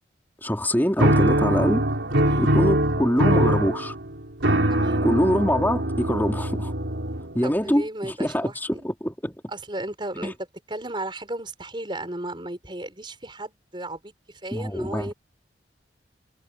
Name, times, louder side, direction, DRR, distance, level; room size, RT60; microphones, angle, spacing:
voice 1, 0.4-1.8 2.4-3.9 5.0-6.7 7.3-9.3 10.2-10.3 14.5-15.1, equal, 10° left, 3.2 m, -24 dB
sound 1, 1.0-7.5, right 1 dB, 85° right, 3.9 m, -22 dB
voice 2, 2.2-2.5 4.7-5.1 7.4-8.9 9.5-10.4 10.7-15.1, right 1 dB, 25° right, 5.3 m, -34 dB
head